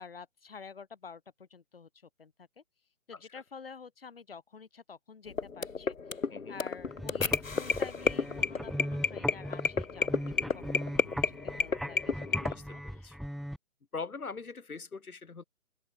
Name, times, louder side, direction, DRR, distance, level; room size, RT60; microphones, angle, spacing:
voice 1, 0.0-1.9 2.2-2.6 3.1-6.0 6.5-13.2, left 5 dB, 40° left, 5.7 m, -49 dB
sound 1, 5.3-12.5, left 5 dB, 65° left, 3.0 m, -31 dB
voice 2, 6.3-6.6 12.5-13.2 13.9-15.4, left 4 dB, 85° left, 3.7 m, -42 dB
sound 2, 6.8-13.6, equal, ahead, 0.4 m, -39 dB
open air
hypercardioid pair, 175°, 42 cm